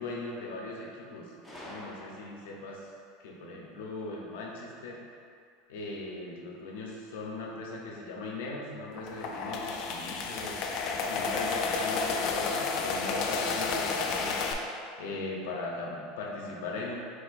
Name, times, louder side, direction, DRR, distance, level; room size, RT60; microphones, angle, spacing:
voice 1, 0.0-1.3 1.7-2.8 3.2-5.0 5.7-14.4 15.0-16.9, left 2 dB, 80° left, -1 dB, 0.7 m, -39 dB
Gunshot gunfire, 1.4-2.7, equal, 5° left, 0.6 m, -46 dB
sound 1, 8.9-14.5, left 4 dB, 40° left, 0.3 m, -31 dB
4.5 x 4.2 x 2.5 m, 2.4 s
supercardioid pair, 175°, 0 cm